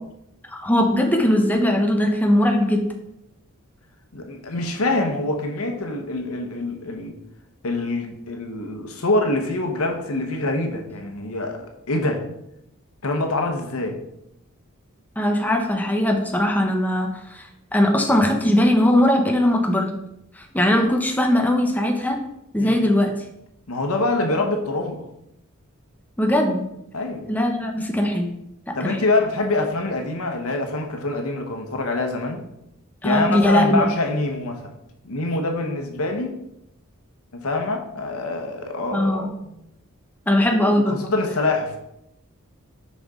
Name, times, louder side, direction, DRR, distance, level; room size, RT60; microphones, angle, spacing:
voice 1, 0.5-2.8 15.2-19.9 20.4-22.2 22.5-23.1 26.2-26.6 27.3-28.3 28.7-29.0 33.0-33.9 38.9-39.3 40.3-41.0, left 1 dB, 10° left, 2 dB, 0.7 m, -20 dB
voice 2, 4.1-7.1 7.6-12.2 13.0-14.0 22.6-22.9 23.7-25.0 26.9-27.2 28.7-32.5 33.0-34.7 35.0-36.4 37.3-39.3 40.4-41.8, left 2 dB, 75° left, 4 dB, 1.0 m, -25 dB
6.6 x 5.5 x 3.7 m, 0.83 s
head